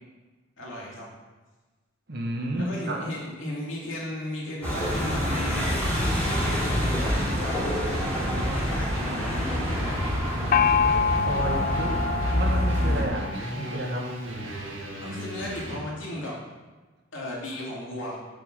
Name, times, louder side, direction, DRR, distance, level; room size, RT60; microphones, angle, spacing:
voice 1, 0.6-1.0 2.5-5.7 6.2-10.1 15.0-16.4 17.1-18.2, left 1 dB, 75° left, -4 dB, 2.8 m, -35 dB
voice 2, 2.1-3.0 11.2-12.0 12.3-14.1, right 1 dB, 55° right, 0 dB, 1.5 m, -31 dB
sound 1, 4.6-13.1, equal, 5° left, 3.0 m, -27 dB
sound 2, 7.9-15.9, right 1 dB, 75° right, 1.6 m, -36 dB
Gong, 10.5-14.0, left 6 dB, 45° left, 0.3 m, -26 dB
7.1 x 6.0 x 6.8 m, 1.3 s
head